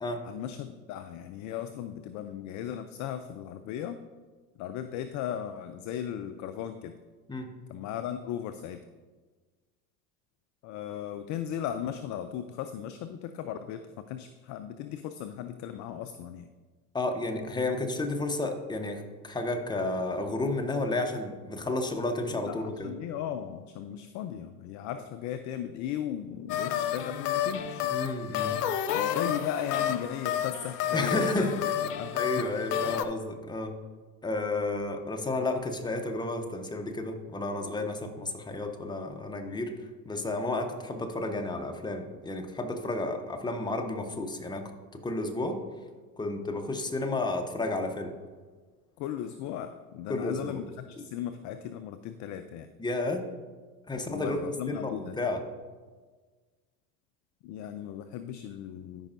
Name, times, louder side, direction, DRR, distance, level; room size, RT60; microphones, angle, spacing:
voice 1, 0.2-4.0 4.6-6.9 7.7-8.8 10.6-16.5 22.3-27.9 28.9-31.5 31.8-32.5 49.0-52.7 54.1-55.2 57.4-59.1, left 10 dB, 40° left, 9 dB, 0.4 m, -37 dB
voice 2, 16.9-22.9 27.9-28.6 30.9-31.5 32.1-33.7 34.2-39.7 40.0-45.6 46.2-48.1 50.1-50.6 52.8-53.2 53.9-54.4 54.7-55.4, left 2 dB, 10° left, 4 dB, 0.9 m, -32 dB
sound 1, 26.5-33.0, left 10 dB, 80° left, 0.7 m, -30 dB
13.5 x 5.4 x 2.6 m, 1.4 s
hypercardioid pair, 85°, 48 cm